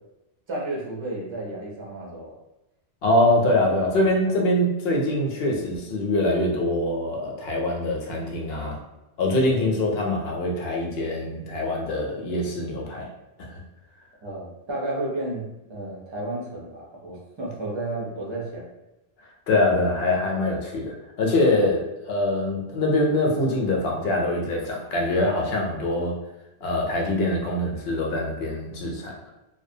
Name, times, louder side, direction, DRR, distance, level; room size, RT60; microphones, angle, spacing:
voice 1, 0.5-2.3 4.2-4.4 14.2-18.7, right 2 dB, 35° right, -3 dB, 0.5 m, -32 dB
voice 2, 3.0-8.8 9.2-13.1 13.4-13.6 19.5-26.1 26.6-29.1, left 1 dB, 70° left, -1 dB, 0.8 m, -24 dB
2.4 x 2.1 x 2.6 m, 0.96 s
omnidirectional pair, 1.1 m